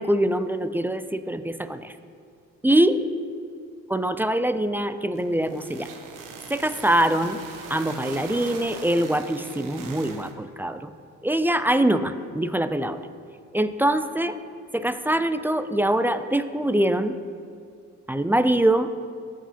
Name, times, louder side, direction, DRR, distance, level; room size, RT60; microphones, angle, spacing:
voice 1, 0.0-1.9 2.6-3.0 3.9-5.9 6.5-7.4 7.7-10.9 11.2-13.0 13.5-14.4 14.7-17.2 18.1-18.9, right 1 dB, 5° right, 11 dB, 0.3 m, -23 dB
sound 1, 5.1-10.3, right 5 dB, 70° right, 0.9 m, -41 dB
14.5 x 5.0 x 2.8 m, 2.3 s
supercardioid pair, 55°, 34 cm